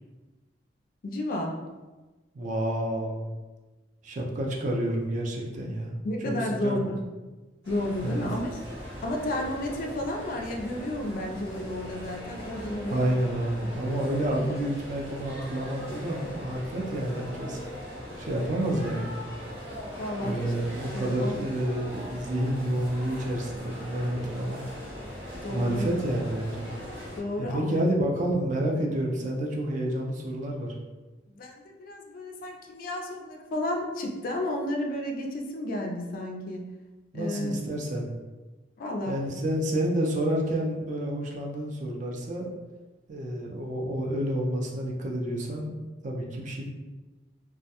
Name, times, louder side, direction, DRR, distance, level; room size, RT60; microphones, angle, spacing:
voice 1, 1.0-1.6 6.0-7.0 7.7-8.5 9.0-13.1 13.6-13.8 20.0-20.6 20.9-21.4 25.4-25.9 27.2-27.8 31.3-36.7 37.1-37.6 38.8-39.2, left 1 dB, 50° left, 1 dB, 0.3 m, -32 dB
voice 2, 2.3-3.3 4.0-6.0 6.2-6.3 6.6-6.7 8.0-8.3 12.9-17.6 18.2-19.1 20.2-24.6 25.5-26.7 27.4-30.7 37.1-38.1 39.1-42.5 43.1-45.7 46.0-46.7, right 1 dB, 45° right, -1 dB, 0.4 m, -29 dB
sound 1, 7.6-27.2, equal, 85° right, 1.0 m, -40 dB
2.2 x 2.1 x 2.8 m, 1.2 s
head